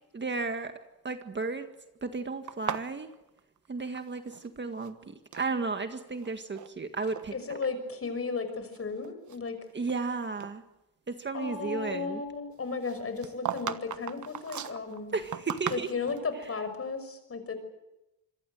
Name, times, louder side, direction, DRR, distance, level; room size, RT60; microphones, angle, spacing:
voice 1, 0.1-0.7 1.0-1.7 2.0-3.1 3.7-7.3 9.7-10.6 11.1-12.2 15.1-15.9, right 4 dB, 30° right, 7 dB, 1.8 m, -33 dB
sound 1, 2.5-4.5 4.7-5.5 6.1-6.7 7.0-7.3 7.9-8.0 8.6-10.1 10.4-10.5 12.8-16.3, right 8 dB, 50° right, 1.4 m, -38 dB
voice 2, 7.3-9.6 11.3-15.1 15.7-17.6, left 4 dB, 35° left, 9 dB, 6.0 m, -34 dB
27.0 x 22.5 x 7.9 m, 0.93 s
cardioid pair, 105°, 38 cm